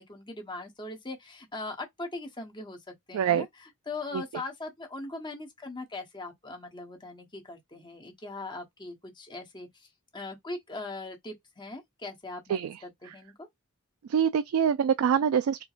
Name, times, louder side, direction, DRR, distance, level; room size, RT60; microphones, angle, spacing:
voice 1, 0.0-9.9 10.1-13.5, left 2 dB, 20° left, 1.0 m, -40 dB
voice 2, 3.1-3.4 4.1-4.2 12.5-12.8 14.1-15.6, right 8 dB, 90° right, 0.3 m, -25 dB
4.5 x 2.2 x 2.4 m
head